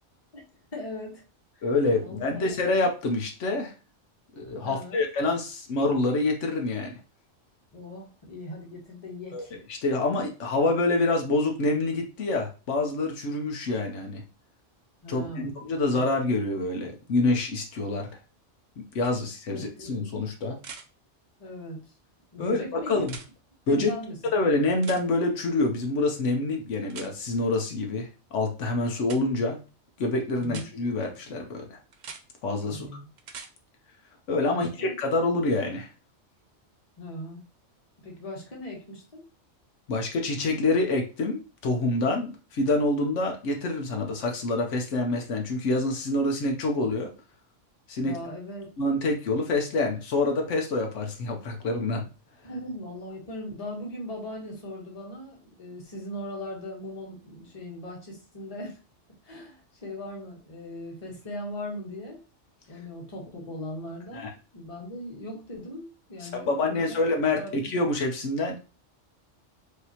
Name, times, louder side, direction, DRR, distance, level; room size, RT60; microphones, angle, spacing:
voice 1, 0.7-1.2 1.6-1.7 2.0-2.6 4.6-5.1 7.7-9.5 15.0-15.6 15.9-16.0 19.5-19.6 21.4-21.8 22.3-23.1 23.7-24.2 30.4-30.7 32.6-33.1 34.4-34.9 37.0-37.4 38.0-39.2 48.0-48.7 52.4-58.8 59.2-62.2 62.7-67.0 67.4-67.8, left 1 dB, 30° left, -1 dB, 1.2 m, -39 dB
voice 2, 1.6-3.7 4.3-7.0 9.3-9.4 9.7-14.2 15.1-18.1 18.9-20.6 22.4-23.2 23.7-23.9 24.3-29.6 30.0-31.4 31.7-31.8 32.4-32.9 34.3-35.9 39.9-47.1 47.9-48.1 48.8-52.0 64.1-64.3 66.2-68.6, left 2 dB, 85° left, 3 dB, 1.1 m, -26 dB
sound 1, 19.0-19.1 20.6-20.9 23.0-23.3 24.8-25.0 26.9-27.1 29.0-29.2 30.4-30.7 31.9-32.2 33.2-33.5 35.6-35.7, right 5 dB, 55° right, 0.5 m, -42 dB
4.8 x 2.8 x 2.8 m, 0.33 s
omnidirectional pair, 1.2 m